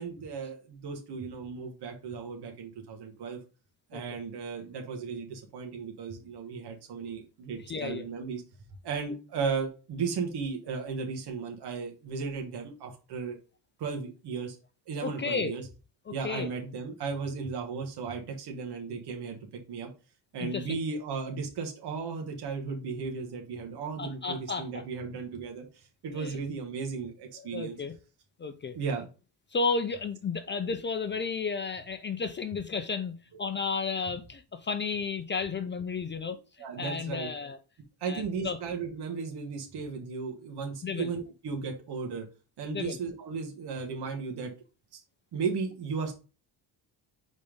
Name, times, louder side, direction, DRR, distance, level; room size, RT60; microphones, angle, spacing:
voice 1, 0.0-3.4 3.9-8.4 8.8-13.4 13.8-14.6 14.9-15.7 16.1-19.4 19.7-19.9 20.3-27.8 28.7-29.1 33.3-33.4 36.6-37.3 38.0-42.3 42.6-44.5 44.9-45.0 45.3-46.1, right 5 dB, 65° right, 2 dB, 1.5 m, -35 dB
voice 2, 7.6-8.1 15.0-15.6 16.1-16.5 20.4-20.8 24.0-24.8 26.1-26.4 27.4-27.9 28.4-28.8 29.5-33.1 33.4-36.4 36.8-37.6 38.0-38.6 40.8-41.1 42.7-43.0, left 5 dB, 25° left, 9 dB, 0.5 m, -33 dB
5.2 x 4.2 x 5.0 m, 0.33 s
cardioid pair, 135°, 43 cm